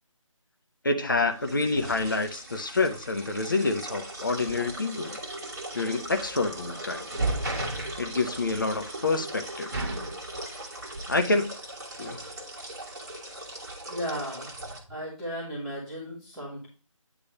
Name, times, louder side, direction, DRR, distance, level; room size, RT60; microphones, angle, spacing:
voice 1, 0.8-5.2 5.7-7.1 8.0-9.8 11.1-11.5 12.0-12.2, left 3 dB, 40° left, 0.7 m, -27 dB
sound 1, 1.2-14.8, right 2 dB, 30° right, 1.5 m, -37 dB
voice 2, 13.9-14.5 14.9-16.7, equal, ahead, 0.6 m, -35 dB
8.9 x 3.3 x 5.3 m
figure-of-eight pair, 160°, 17 cm